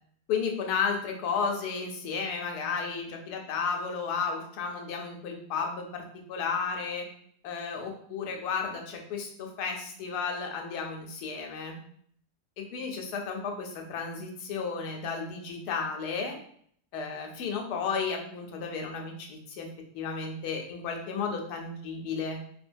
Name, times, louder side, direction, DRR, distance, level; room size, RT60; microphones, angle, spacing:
voice 1, 0.3-7.1 7.4-11.8 12.6-16.4 16.9-19.7 19.9-22.4, left 5 dB, 80° left, 2 dB, 1.1 m, -33 dB
2.9 x 2.2 x 2.5 m, 0.63 s
omnidirectional pair, 1.7 m